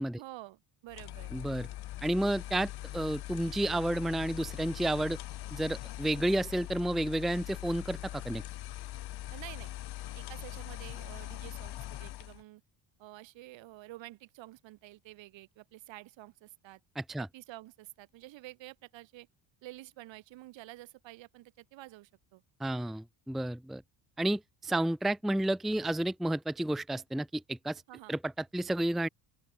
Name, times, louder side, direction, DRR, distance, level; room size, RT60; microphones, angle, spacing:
voice 1, 0.2-1.3 9.3-9.7 10.2-12.6 13.0-16.8 17.2-19.3 19.6-22.4 27.9-28.1, right 17 dB, 75° right, 5.5 m, -49 dB
sound 1, 0.9-12.4, left 15 dB, 55° left, 1.4 m, -42 dB
voice 2, 1.3-1.7 2.0-5.2 5.5-8.4 17.0-17.3 22.6-23.8 24.2-27.8 28.1-29.1, right 1 dB, ahead, 0.6 m, -31 dB
open air
cardioid pair, 140°, 46 cm